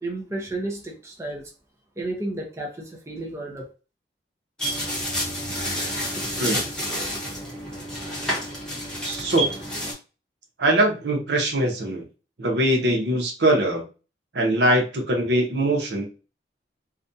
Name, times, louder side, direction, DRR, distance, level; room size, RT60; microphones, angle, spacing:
voice 1, 0.0-1.4 2.0-3.7, right 2 dB, 15° right, -1 dB, 0.5 m, -32 dB
sound 1, 4.6-9.9, equal, 5° left, 0.8 m, -29 dB
voice 2, 9.0-9.5 10.6-12.0 12.4-13.8 14.3-16.0, right 1 dB, 70° right, 1 dB, 0.7 m, -22 dB
2.4 x 2.1 x 2.6 m, 0.33 s
head